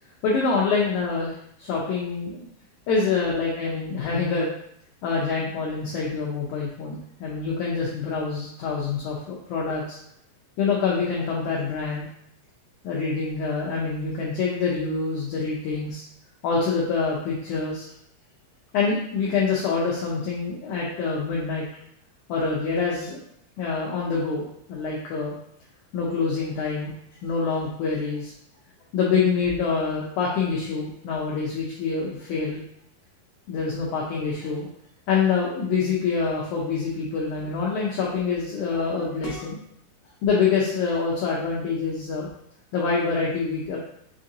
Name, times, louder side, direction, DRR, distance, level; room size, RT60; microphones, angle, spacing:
voice 1, 0.2-2.5 2.9-4.5 5.0-10.0 10.6-12.1 12.8-16.0 16.4-17.9 18.7-21.6 22.3-23.2 23.6-25.3 25.9-26.9 27.2-28.3 28.9-32.6 33.5-34.7 35.1-39.6 40.2-42.3 42.7-43.8, left 5 dB, 85° left, -4 dB, 1.7 m, -26 dB
6.7 x 2.6 x 2.7 m, 0.71 s
omnidirectional pair, 4.3 m